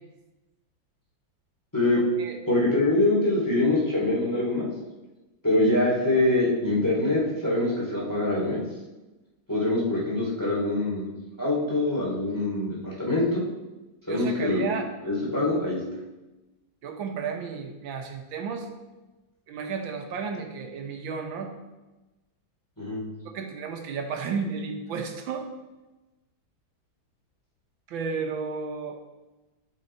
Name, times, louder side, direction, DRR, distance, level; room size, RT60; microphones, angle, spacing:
voice 1, 1.9-2.4 14.1-14.9 16.8-18.7 19.5-21.5 23.2-25.5 27.9-29.0, right 5 dB, 80° right, 4 dB, 1.6 m, -33 dB
voice 2, 2.5-4.7 5.4-8.6 9.5-11.1 11.4-13.4 14.1-14.7 15.0-15.8 22.8-23.0, left 2 dB, 10° left, -6 dB, 2.6 m, -24 dB
12.0 x 4.9 x 4.3 m, 1.1 s
omnidirectional pair, 2.1 m